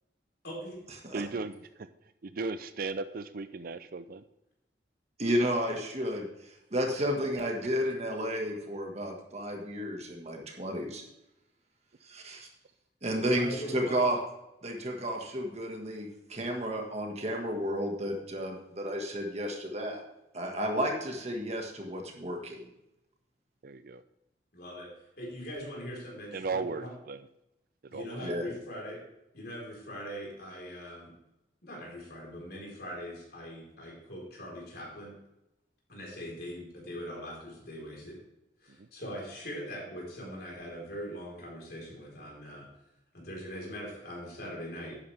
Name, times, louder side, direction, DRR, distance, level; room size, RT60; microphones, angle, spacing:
voice 1, 0.4-0.7 13.4-13.9 24.5-24.9 25.2-26.9 27.9-29.0 29.3-31.1 31.6-35.1 35.9-38.2 38.6-42.7 43.1-45.0, equal, 60° left, -2 dB, 4.1 m, -41 dB
voice 2, 1.1-1.9 2.2-4.2 23.6-24.0 26.3-27.2 27.8-28.2 38.8-38.9, right 4 dB, 55° right, 12 dB, 0.5 m, -36 dB
voice 3, 5.2-6.3 6.7-11.0 12.1-12.5 13.0-14.2 14.6-20.0 20.3-22.6 28.2-28.5, equal, 35° right, 1 dB, 1.7 m, -32 dB
11.0 x 9.5 x 3.4 m, 0.90 s
head